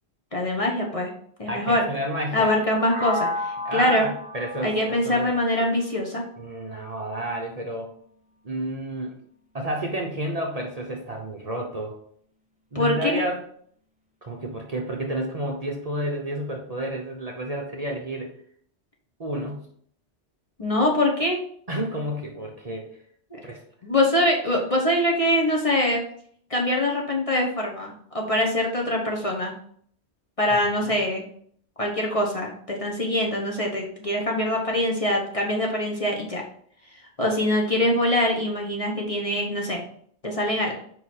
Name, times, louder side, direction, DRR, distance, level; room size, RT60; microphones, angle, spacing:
voice 1, 0.3-1.1 1.4-1.9 2.3-4.1 4.6-6.2 12.7-13.1 20.6-21.4 23.3-23.4 23.8-26.0 26.5-29.5 30.4-31.2 31.8-36.4 37.2-39.8 40.2-40.7, left 1 dB, 30° left, -1 dB, 1.0 m, -23 dB
voice 2, 1.5-2.5 3.6-5.3 6.4-7.9 8.4-9.1 9.5-12.0 12.7-13.4 14.2-18.3 19.2-19.6 21.7-22.9 23.4-23.6 30.8-31.0, right 1 dB, 35° right, 0 dB, 0.8 m, -30 dB
sound 1, 2.9-6.8, left 2 dB, 10° right, 0.6 m, -33 dB
4.9 x 4.6 x 4.2 m, 0.62 s
omnidirectional pair, 1.2 m